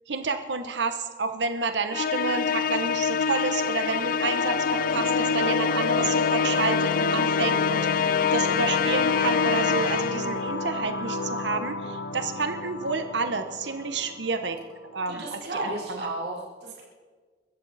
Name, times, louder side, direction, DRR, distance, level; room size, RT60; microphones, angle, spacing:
voice 1, 0.1-7.9 8.3-14.6 14.9-16.0, right 4 dB, 85° right, 8 dB, 1.1 m, -29 dB
Musical instrument, 1.9-10.4, left 7 dB, 50° left, 0.4 m, -25 dB
sound 1, 4.2-15.2, left 2 dB, 70° left, 1.1 m, -32 dB
voice 2, 8.0-8.3 15.1-16.8, right 2 dB, 65° right, -6 dB, 4.2 m, -34 dB
24.0 x 13.5 x 4.2 m, 1.5 s
head